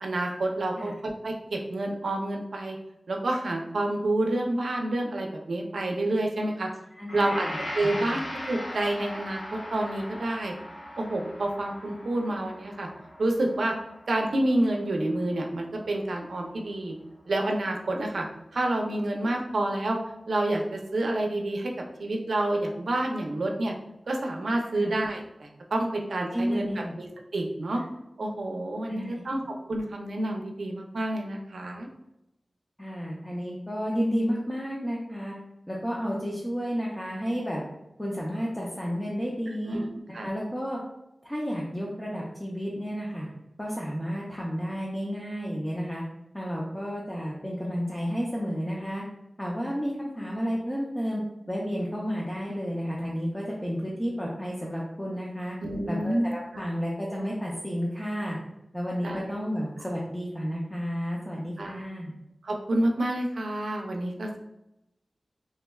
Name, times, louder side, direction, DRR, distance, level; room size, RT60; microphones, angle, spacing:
voice 1, 0.0-2.8 3.1-6.7 7.1-7.5 7.8-10.5 11.0-12.9 13.2-13.7 14.1-16.9 17.3-18.2 18.5-20.0 20.3-21.7 22.0-23.7 24.1-26.7 27.0-27.8 28.2-29.4 29.7-31.9 39.7-39.9 40.1-40.3 55.6-56.6 59.0-59.3 61.6-61.8 62.4-64.4, right 1 dB, 85° right, 1 dB, 0.4 m, -28 dB
voice 2, 6.9-7.6 8.1-8.2 24.8-24.9 26.3-26.9 27.7-27.8 28.9-29.2 32.8-35.3 35.7-37.6 38.0-39.8 40.1-40.8 41.2-43.3 43.6-46.0 46.3-49.0 49.4-51.2 51.5-55.6 55.9-58.4 58.7-62.1, equal, 10° left, -4 dB, 0.4 m, -31 dB
Gong, 7.1-15.5 15.9-16.0, left 1 dB, 75° left, 0.7 m, -39 dB
3.5 x 2.1 x 2.2 m, 0.88 s
wide cardioid pair, 90°, 0 cm